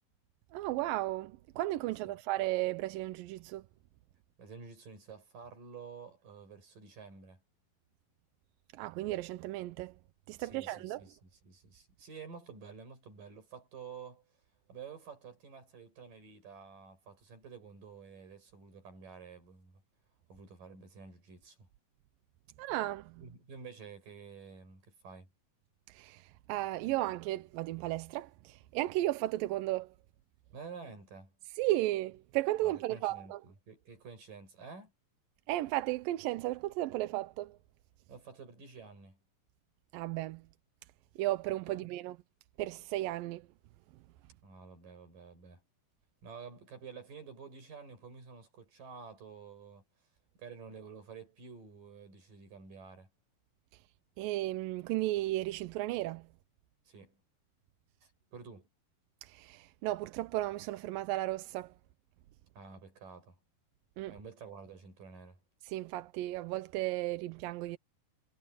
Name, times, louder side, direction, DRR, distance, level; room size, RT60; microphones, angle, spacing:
voice 1, 0.5-3.6 8.7-10.0 10.3-11.0 22.6-23.2 25.9-29.9 31.6-33.4 35.5-37.6 39.9-40.4 41.2-42.2 42.6-43.5 54.2-56.3 59.2-61.7 64.0-64.2 65.6-67.8, right 16 dB, 75° right, 2.3 m, -34 dB
voice 2, 4.4-7.4 10.4-14.3 14.7-19.8 20.3-21.7 23.2-25.3 30.5-31.3 32.6-33.3 33.7-34.9 38.1-39.2 41.7-41.9 44.4-45.6 46.2-49.8 50.4-53.1 56.9-57.2 58.0-58.7 62.5-63.4 64.1-65.4, right 5 dB, 60° right, 8.0 m, -50 dB
omnidirectional pair, 4.3 m